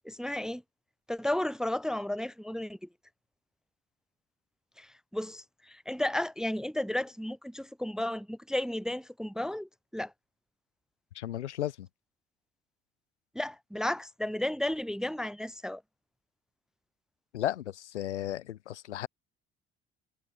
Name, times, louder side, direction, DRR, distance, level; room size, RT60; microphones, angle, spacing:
voice 1, 0.0-0.6 1.1-2.9 4.8-10.1 13.3-15.8, left 1 dB, ahead, 0.5 m, -33 dB
voice 2, 11.1-11.9 17.3-19.1, left 12 dB, 80° left, 0.7 m, -34 dB
figure-of-eight pair, 50°, 34 cm